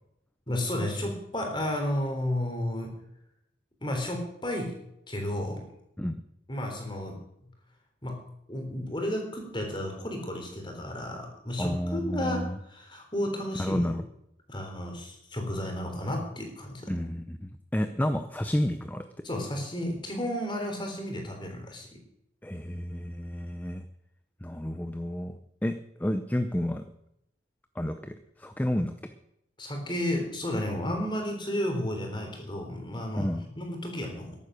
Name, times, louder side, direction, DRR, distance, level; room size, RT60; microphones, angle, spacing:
voice 1, 0.5-2.9 3.8-4.7 5.1-5.7 6.5-7.2 8.0-8.2 8.5-13.9 14.5-16.9 19.2-22.0 29.6-33.3 33.6-34.4, left 1 dB, 25° left, 3 dB, 3.6 m, -32 dB
voice 2, 11.6-12.6 13.6-14.0 16.9-19.0 22.4-23.8 24.4-25.3 25.6-26.8 27.8-28.9 33.2-33.4, equal, 10° left, 8 dB, 0.6 m, -30 dB
13.5 x 11.0 x 6.4 m, 0.81 s
head